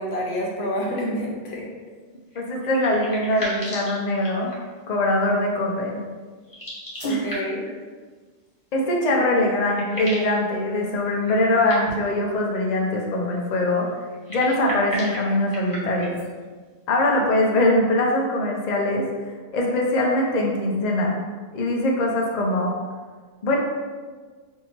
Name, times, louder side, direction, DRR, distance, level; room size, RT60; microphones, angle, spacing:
voice 1, 0.0-1.7 7.0-7.6, equal, 75° left, -2 dB, 1.0 m, -28 dB
sound 1, 2.3-4.8 6.4-7.7 9.1-9.2 9.4-10.4 11.2-12.2 14.1-16.3, equal, 20° left, 0.9 m, -35 dB
voice 2, 2.4-4.5 4.9-6.0 7.0-7.2 8.7-13.9 14.3-16.2 16.9-21.2 21.5-22.7 23.4-23.6, left 1 dB, 50° left, 0 dB, 0.6 m, -22 dB
2.7 x 2.7 x 4.3 m, 1.5 s
omnidirectional pair, 1.1 m